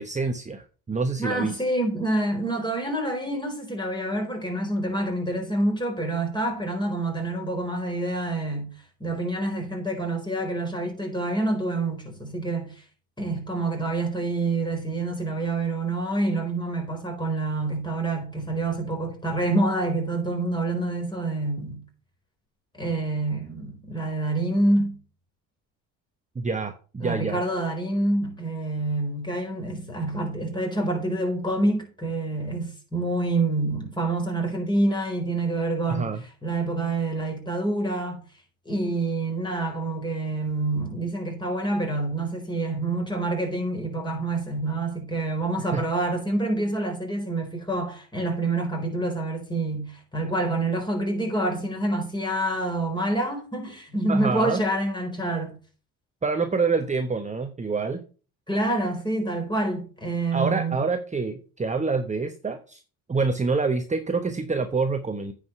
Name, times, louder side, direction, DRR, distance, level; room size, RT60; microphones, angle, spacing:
voice 1, 0.0-1.6 26.3-27.4 35.9-36.2 45.7-45.9 54.1-54.6 56.2-58.0 60.3-62.8 63.1-65.3, right 4 dB, 15° right, 1.0 m, -27 dB
voice 2, 1.2-8.7 9.0-12.7 13.2-21.8 22.7-24.9 27.0-38.2 38.6-55.5 58.5-60.8, right 2 dB, 10° left, 4.4 m, -27 dB
9.3 x 5.0 x 5.6 m
supercardioid pair, 70°, 41 cm